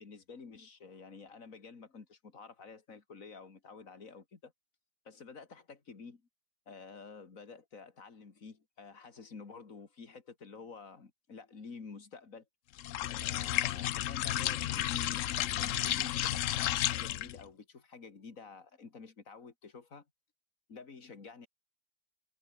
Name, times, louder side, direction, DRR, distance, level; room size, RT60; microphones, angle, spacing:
voice 1, 0.0-4.5 5.0-6.2 6.7-12.4 13.2-20.0 20.7-21.5, left 5 dB, 45° left, 2.8 m, -50 dB
sound 1, 12.8-17.4, left 13 dB, 85° left, 0.7 m, -32 dB
omnidirectional pair, 2.0 m